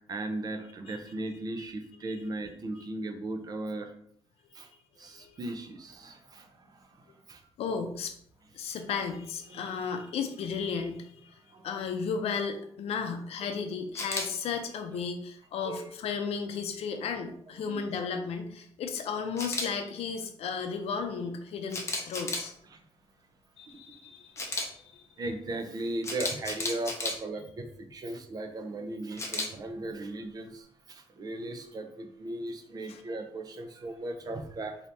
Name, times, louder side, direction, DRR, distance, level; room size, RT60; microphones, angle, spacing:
voice 1, 0.1-3.9 4.5-4.7 5.0-7.4 8.7-8.8 9.5-9.7 11.5-11.9 15.6-15.9 17.6-17.8 22.7-22.8 23.7-23.8 25.2-34.8, right 2 dB, 40° right, 6 dB, 0.5 m, -37 dB
voice 2, 5.1-5.6 7.6-8.1 8.5-11.3 11.6-22.5 23.6-25.1 32.9-33.0, left 6 dB, 85° left, 5 dB, 0.5 m, -34 dB
Camera, 14.0-14.3 19.4-19.7 21.7-22.5 24.4-24.7 26.0-27.1 29.2-29.5, left 2 dB, 30° left, 0.7 m, -32 dB
4.1 x 2.8 x 3.3 m, 0.65 s
wide cardioid pair, 150°, 10 cm